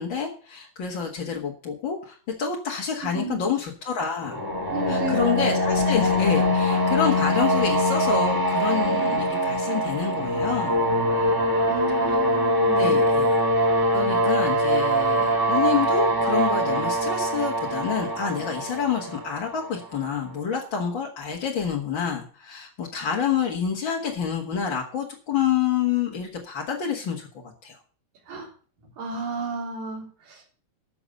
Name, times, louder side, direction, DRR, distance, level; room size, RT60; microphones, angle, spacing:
voice 1, 0.0-4.4 4.9-10.8 12.0-12.2 12.7-13.4 13.9-27.8, left 7 dB, 45° left, -2 dB, 2.0 m, -28 dB
voice 2, 3.1-3.5 4.7-5.5 11.6-13.1 28.3-28.5 29.0-30.5, right 3 dB, 85° right, 0 dB, 5.2 m, -33 dB
sound 1, 4.2-20.1, equal, 5° right, 2.8 m, -23 dB
13.0 x 7.0 x 6.6 m, 0.41 s
omnidirectional pair, 3.7 m